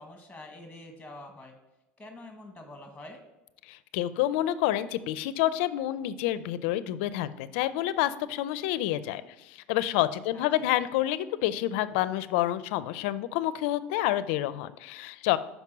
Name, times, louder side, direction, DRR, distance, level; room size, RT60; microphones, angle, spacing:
voice 1, 0.0-1.5 2.0-3.2 10.3-10.7, left 2 dB, 10° left, 4 dB, 1.3 m, -46 dB
voice 2, 3.7-15.4, left 14 dB, 80° left, 15 dB, 0.4 m, -28 dB
6.0 x 5.2 x 5.9 m, 0.96 s
supercardioid pair, 90°, 6 cm